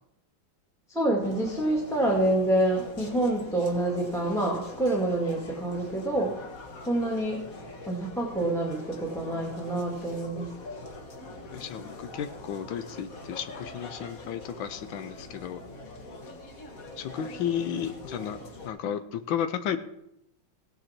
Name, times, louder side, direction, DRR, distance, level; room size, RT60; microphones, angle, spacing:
voice 1, 0.9-6.4 6.9-7.5 7.9-10.5, right 1 dB, ahead, -1 dB, 1.8 m, -27 dB
sound 1, 1.2-18.7, left 2 dB, 45° left, 1.9 m, -43 dB
voice 2, 11.5-15.6 17.0-19.8, left 8 dB, 80° left, 11 dB, 1.5 m, -33 dB
16.5 x 9.2 x 4.4 m, 0.83 s
omnidirectional pair, 2.1 m